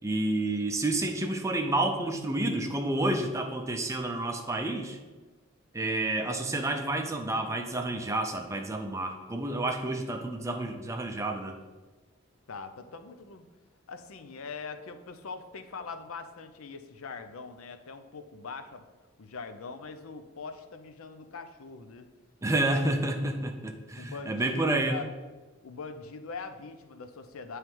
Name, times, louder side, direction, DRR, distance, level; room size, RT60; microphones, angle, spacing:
voice 1, 0.0-5.0 5.7-11.5 22.4-25.0, right 2 dB, 15° right, 4 dB, 0.5 m, -29 dB
voice 2, 12.5-13.5 13.9-18.8 19.2-22.1 24.0-25.1 25.6-27.6, left 4 dB, 80° left, 9 dB, 0.5 m, -42 dB
8.7 x 3.2 x 4.5 m, 1.2 s
head